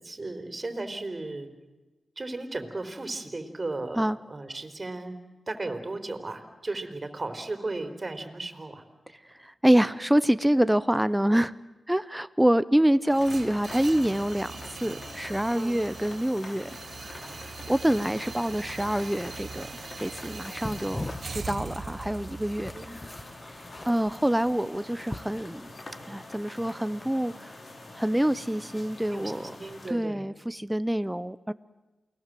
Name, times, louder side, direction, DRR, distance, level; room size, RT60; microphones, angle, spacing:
voice 1, 0.0-1.5 2.2-5.1 5.5-8.8 15.5-15.8 22.7-22.9 29.1-30.3, right 2 dB, 40° right, 8 dB, 4.0 m, -35 dB
voice 2, 9.4-11.5 11.9-17.3 17.7-19.7 20.0-22.7 23.8-25.7 26.1-27.5 28.0-29.6 29.9-31.5, right 1 dB, 10° right, 15 dB, 0.9 m, -26 dB
sound 1, 13.1-29.9, left 2 dB, 50° left, 4.5 m, -45 dB
sound 2, 13.1-25.2, right 4 dB, 60° right, 1.4 m, -42 dB
sound 3, 20.1-26.0, left 1 dB, 25° left, 1.2 m, -41 dB
29.0 x 20.5 x 7.8 m, 1.1 s
cardioid pair, 45°, 0 cm